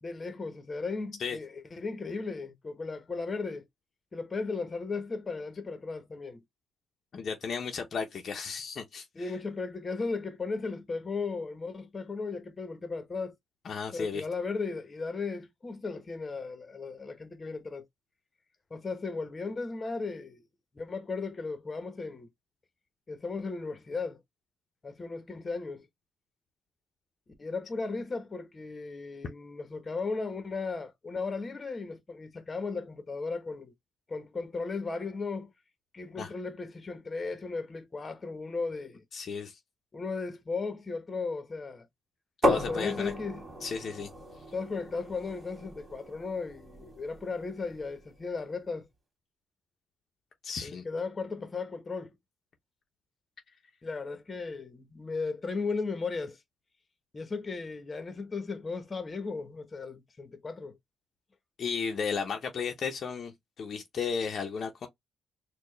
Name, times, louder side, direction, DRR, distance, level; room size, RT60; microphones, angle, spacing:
voice 1, 0.0-3.7 4.1-6.4 9.1-13.3 13.9-17.8 18.7-20.4 20.7-22.3 23.1-24.2 24.8-25.8 27.4-33.7 34.1-35.5 35.9-39.0 39.9-41.9 42.5-43.4 44.5-48.9 50.6-52.1 53.8-56.4 57.1-60.8, left 4 dB, 30° left, 1.1 m, -36 dB
voice 2, 7.1-9.4 13.6-14.2 36.1-36.3 39.1-39.6 42.4-43.1 43.6-44.1 50.4-50.8 61.6-64.9, left 5 dB, 50° left, 0.8 m, -34 dB
sound 1, 42.4-48.1, left 1 dB, 35° right, 2.2 m, -34 dB
4.3 x 2.4 x 3.3 m
cardioid pair, 90°, 0 cm